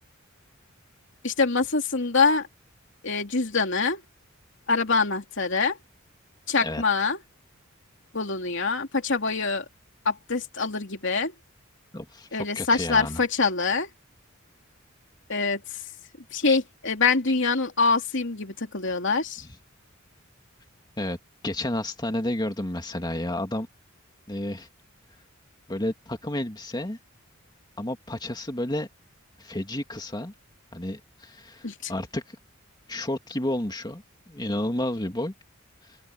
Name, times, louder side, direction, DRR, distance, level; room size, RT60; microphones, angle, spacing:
voice 1, 1.2-2.5 3.0-4.0 4.7-5.8 6.5-7.2 8.1-9.6 10.0-11.3 12.3-13.9 15.3-15.8 16.3-19.5 31.6-31.9, left 4 dB, 60° left, 3.0 m, -25 dB
voice 2, 11.9-13.2 21.0-21.2 21.4-23.7 24.3-24.7 25.7-27.0 27.8-28.9 29.4-30.3 30.7-32.4 32.9-35.3, left 1 dB, 20° left, 2.4 m, -31 dB
open air
head